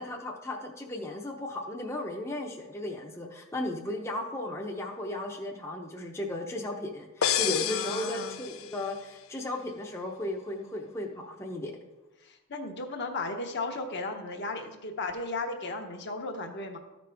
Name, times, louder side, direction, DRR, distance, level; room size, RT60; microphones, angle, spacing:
voice 1, 0.0-11.7, left 1 dB, 15° left, 0 dB, 0.7 m, -35 dB
sound 1, 7.2-9.0, left 10 dB, 80° left, 0.5 m, -30 dB
voice 2, 7.6-8.4 12.2-16.8, left 3 dB, 55° left, 3 dB, 0.9 m, -35 dB
13.0 x 5.1 x 3.4 m, 1.1 s
head